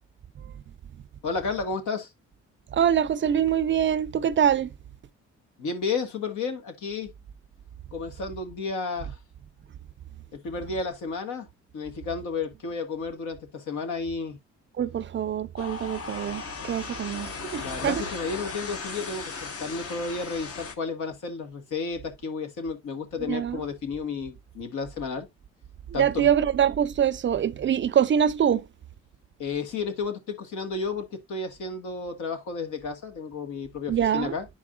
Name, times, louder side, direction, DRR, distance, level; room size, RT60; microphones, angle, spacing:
voice 1, 1.2-2.1 5.6-7.1 7.9-9.2 10.4-11.5 11.7-14.4 17.6-25.3 25.9-26.3 29.4-34.5, left 4 dB, 75° left, 1.7 m, -32 dB
voice 2, 2.7-4.7 14.8-18.0 23.2-23.6 25.9-28.6 33.9-34.3, right 9 dB, 40° right, 0.4 m, -24 dB
sound 1, 15.6-20.8, left 4 dB, 50° left, 1.2 m, -37 dB
10.0 x 4.8 x 2.4 m
cardioid pair, 90°, 30 cm